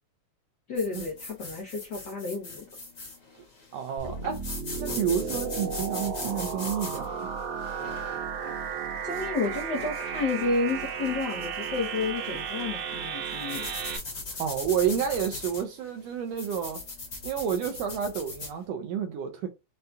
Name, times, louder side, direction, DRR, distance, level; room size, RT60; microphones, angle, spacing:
voice 1, 0.7-2.6 9.0-13.7 14.9-15.0, left 3 dB, 90° left, 0.9 m, -31 dB
sound 1, 0.8-18.6, left 3 dB, 45° left, 1.0 m, -41 dB
voice 2, 3.7-4.4 4.8-7.3 14.4-16.8 17.2-19.5, right 8 dB, 80° right, 1.5 m, -30 dB
sound 2, 4.0-14.0, right 6 dB, 65° right, 1.8 m, -34 dB
6.4 x 2.3 x 2.7 m
omnidirectional pair, 3.4 m